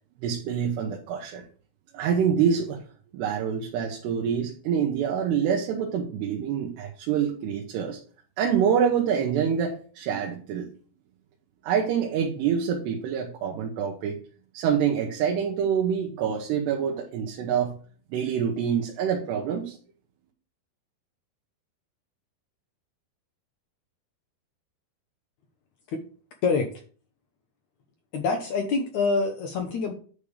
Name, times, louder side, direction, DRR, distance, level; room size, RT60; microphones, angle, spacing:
voice 1, 0.2-1.5 1.9-2.8 3.1-8.0 8.4-10.7 11.6-14.2 14.5-17.7 18.1-19.8, right 7 dB, 85° right, 1 dB, 3.2 m, -26 dB
voice 2, 28.1-29.9, left 4 dB, 75° left, 4 dB, 1.7 m, -25 dB
9.9 x 3.3 x 7.0 m, 0.42 s
omnidirectional pair, 4.7 m